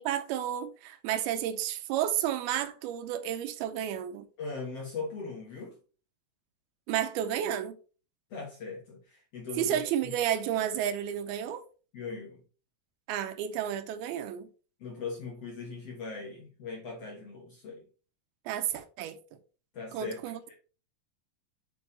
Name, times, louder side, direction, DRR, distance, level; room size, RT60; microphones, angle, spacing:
voice 1, 0.0-4.3 6.9-7.8 9.6-11.6 13.1-14.5 18.5-19.2 19.9-20.4, right 10 dB, 80° right, 2.6 m, -31 dB
voice 2, 4.4-5.8 8.3-10.1 11.9-12.4 14.8-17.8 19.7-20.2 20.5-20.6, left 4 dB, 60° left, 1.7 m, -40 dB
7.2 x 5.1 x 4.1 m
omnidirectional pair, 4.5 m